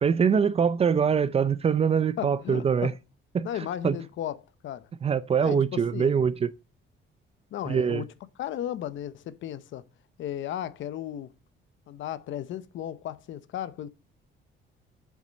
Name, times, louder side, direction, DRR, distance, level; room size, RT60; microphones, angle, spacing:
voice 1, 0.0-2.9 3.3-3.5 3.8-4.0 5.0-6.5 7.7-8.0, right 6 dB, 30° right, 0.5 m, -23 dB
voice 2, 2.2-3.0 3.4-4.4 4.6-4.9 5.4-6.1 7.5-8.1 8.4-9.8 10.2-11.3 11.9-13.9, left 11 dB, 65° left, 0.8 m, -35 dB
7.3 x 7.1 x 6.3 m
cardioid pair, 155°, 21 cm